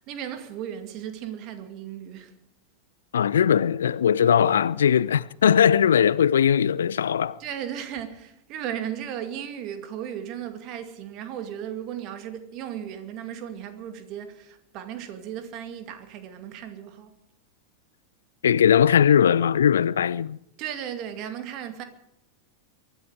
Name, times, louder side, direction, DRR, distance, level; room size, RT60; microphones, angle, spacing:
voice 1, 0.0-2.3 7.4-17.2 20.6-21.8, right 9 dB, 40° right, 2.3 m, -36 dB
voice 2, 3.1-7.4 18.4-20.4, left 8 dB, 65° left, 0.5 m, -20 dB
23.5 x 12.0 x 5.0 m
figure-of-eight pair, 90°, 0 cm